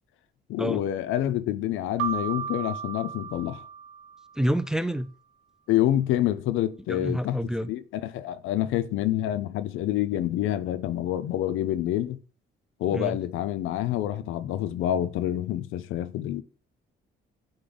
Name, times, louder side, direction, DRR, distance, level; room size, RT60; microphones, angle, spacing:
voice 1, 0.5-3.6 5.7-7.4 7.7-12.2 12.8-16.4, left 12 dB, 90° left, 0.5 m, -27 dB
Keyboard (musical), 2.0-4.5, right 8 dB, 85° right, 0.5 m, -34 dB
voice 2, 4.4-5.1 6.9-7.7 12.9-13.2, equal, 5° right, 0.4 m, -28 dB
8.6 x 3.2 x 3.9 m
cardioid pair, 90°, 20 cm